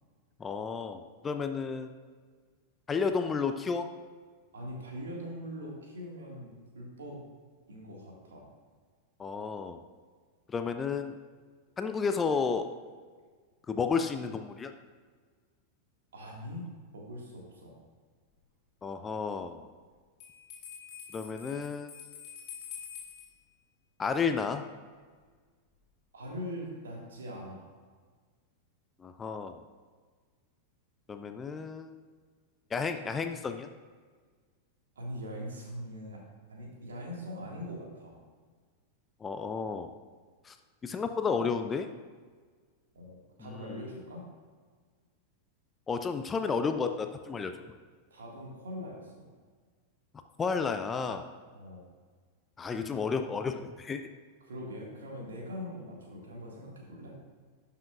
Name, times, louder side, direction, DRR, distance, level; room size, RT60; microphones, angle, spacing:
voice 1, 0.4-1.9 2.9-3.9 9.2-9.8 10.5-11.2 11.8-12.7 13.7-14.7 18.8-19.7 21.1-21.9 24.0-24.7 29.0-29.6 31.1-32.0 32.7-33.7 39.2-39.9 40.4-40.6 40.8-41.9 43.4-43.8 45.9-47.5 50.4-51.3 52.6-54.1, left 5 dB, 20° left, 8 dB, 0.4 m, -32 dB
voice 2, 4.5-7.2 7.7-8.5 16.1-16.7 16.9-17.8 26.1-27.7 35.0-36.2 36.5-38.2 42.9-44.2 48.1-49.3 51.5-51.9 54.4-57.2, equal, 65° right, -1 dB, 1.9 m, -42 dB
Bell, 20.2-23.3, left 7 dB, 45° left, 2.3 m, -46 dB
12.0 x 5.7 x 2.4 m, 1.5 s
figure-of-eight pair, 90°, 0 cm